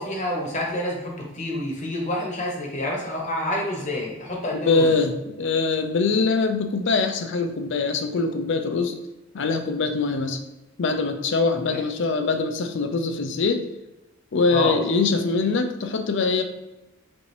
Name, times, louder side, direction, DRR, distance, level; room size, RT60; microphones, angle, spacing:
voice 1, 0.0-4.9 11.7-11.8 14.5-14.7, left 1 dB, 35° left, -1 dB, 0.9 m, -28 dB
voice 2, 4.5-8.9 9.3-10.4 10.8-13.6 14.3-16.4, left 4 dB, 60° left, 7 dB, 0.5 m, -23 dB
5.2 x 2.7 x 3.3 m, 1.0 s
head